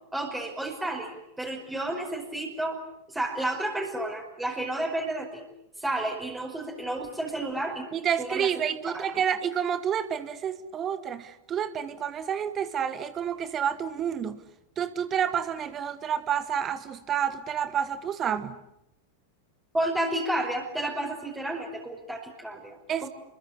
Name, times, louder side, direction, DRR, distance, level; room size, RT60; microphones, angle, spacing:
voice 1, 0.1-2.8 3.1-5.4 5.8-7.9 8.2-8.5 8.9-9.2 19.7-23.1, right 1 dB, 10° right, -1 dB, 5.2 m, -31 dB
voice 2, 7.9-14.4 14.8-18.6 22.9-23.1, right 8 dB, 25° right, 13 dB, 1.4 m, -29 dB
29.5 x 22.5 x 8.3 m, 0.84 s
figure-of-eight pair, 90°, 0 cm